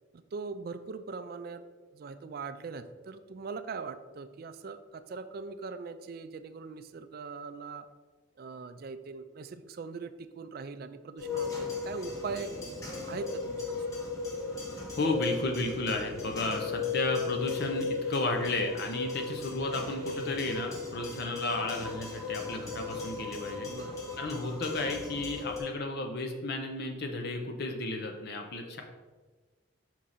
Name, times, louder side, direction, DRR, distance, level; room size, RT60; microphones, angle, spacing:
voice 1, 0.1-1.6 1.9-7.9 8.4-12.5 13.0-13.8 23.7-24.0, right 4 dB, 50° right, 11 dB, 0.3 m, -41 dB
sound 1, 11.2-25.6, left 4 dB, 15° left, 1.0 m, -36 dB
voice 2, 15.0-23.7 24.2-28.8, left 2 dB, 55° left, 3 dB, 0.6 m, -33 dB
5.6 x 4.5 x 3.8 m, 1.3 s
head